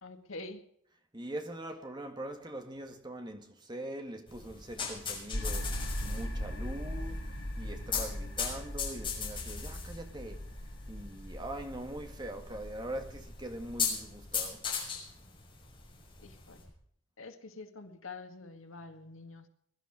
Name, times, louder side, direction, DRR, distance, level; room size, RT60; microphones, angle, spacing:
voice 1, 0.0-0.6 16.2-16.6 17.2-19.5, left 3 dB, 85° left, 2.1 m, -46 dB
voice 2, 1.1-10.5 10.9-14.7, right 1 dB, 20° right, 1.8 m, -42 dB
sound 1, 4.3-16.7, left 6 dB, 25° left, 6.6 m, -39 dB
sound 2, 5.3-14.7, equal, 65° left, 5.5 m, -40 dB
21.5 x 12.0 x 5.1 m
head